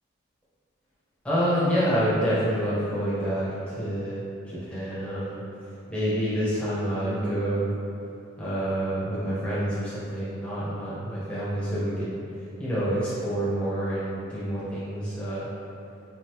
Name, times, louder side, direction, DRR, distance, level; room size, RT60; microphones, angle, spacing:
voice 1, 1.2-5.4 5.9-7.7 8.4-12.1 12.6-15.5, equal, 5° left, -11 dB, 1.1 m, -27 dB
5.0 x 2.7 x 3.0 m, 2.7 s
head